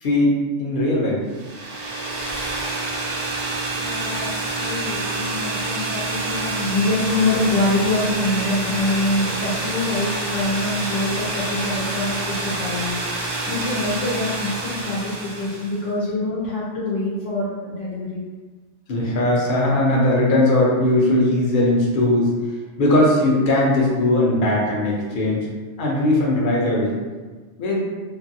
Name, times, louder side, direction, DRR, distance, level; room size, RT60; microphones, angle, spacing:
voice 1, 0.0-1.2 18.9-22.3 22.8-25.4 25.8-26.9 27.6-27.8, left 1 dB, 50° left, -3 dB, 0.7 m, -19 dB
sound 1, 1.3-15.8, right 2 dB, 60° right, 0.7 m, -27 dB
voice 2, 3.7-18.2, left 2 dB, 80° left, -7 dB, 1.0 m, -25 dB
2.6 x 2.5 x 2.6 m, 1.4 s
omnidirectional pair, 1.2 m